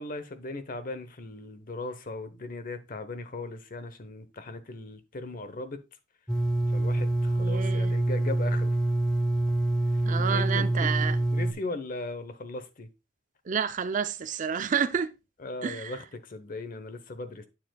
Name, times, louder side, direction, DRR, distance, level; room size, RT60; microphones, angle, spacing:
voice 1, 0.0-5.8 6.7-8.8 10.3-10.9 11.3-12.9 15.4-17.5, left 2 dB, 50° left, 0.8 m, -38 dB
sound 1, 6.3-11.5, right 1 dB, 5° left, 0.7 m, -26 dB
voice 2, 7.4-7.9 10.1-11.2 13.5-15.1 15.6-16.0, right 7 dB, 45° right, 0.4 m, -29 dB
9.1 x 6.9 x 2.3 m
head